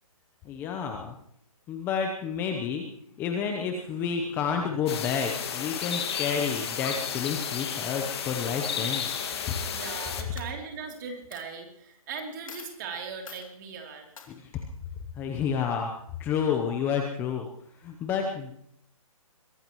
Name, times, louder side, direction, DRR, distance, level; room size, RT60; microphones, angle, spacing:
voice 1, 0.4-1.1 1.7-2.8 3.2-9.1 9.5-9.6 14.3-14.5 15.2-15.9 16.2-17.5 17.8-18.5, left 6 dB, 10° left, 4 dB, 0.8 m, -30 dB
sound 1, 4.9-10.2, left 7 dB, 45° left, 2.1 m, -32 dB
voice 2, 8.4-8.9 9.6-14.1, right 5 dB, 30° right, 2 dB, 3.2 m, -39 dB
Coin (dropping), 10.4-11.0 11.3-11.4 12.2-12.3 12.5-12.8 13.3-13.5 14.2-14.3, left 6 dB, 65° left, 2.9 m, -45 dB
22.5 x 17.5 x 3.1 m, 0.71 s
hypercardioid pair, 165°, 18 cm